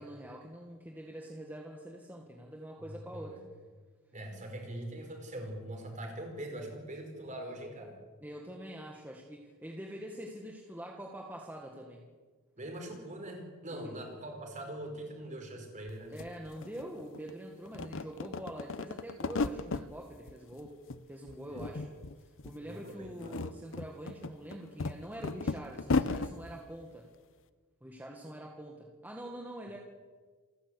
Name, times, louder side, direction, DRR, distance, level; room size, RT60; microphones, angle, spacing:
voice 1, 0.0-3.4 8.2-12.0 13.7-13.9 16.1-20.8 21.1-21.9 22.2-27.1 27.8-29.8, right 1 dB, 10° right, -1 dB, 1.8 m, -45 dB
voice 2, 2.8-3.4 4.1-8.0 12.5-16.1 21.5-21.9 22.6-23.4, right 1 dB, 35° right, 3 dB, 4.8 m, -42 dB
sound 1, 15.9-16.0 16.2-17.3 17.7-19.9 20.3-21.0 21.3-22.1 22.4-22.6 23.0-26.3, left 3 dB, 60° left, 0.7 m, -35 dB
28.0 x 12.0 x 8.3 m, 1.5 s
head